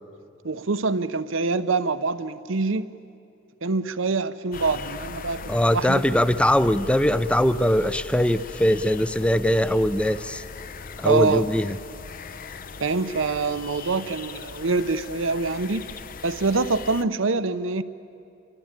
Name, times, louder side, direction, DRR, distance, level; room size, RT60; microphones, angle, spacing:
voice 1, 0.4-2.9 3.6-6.0 11.0-11.5 12.8-15.9 16.2-17.8, right 3 dB, 80° right, 13 dB, 0.9 m, -25 dB
sound 1, 4.5-17.0, left 4 dB, 45° left, 0.7 m, -39 dB
voice 2, 5.5-10.4 11.0-11.8, equal, 5° left, 14 dB, 0.5 m, -21 dB
27.0 x 23.0 x 9.0 m, 2.6 s
head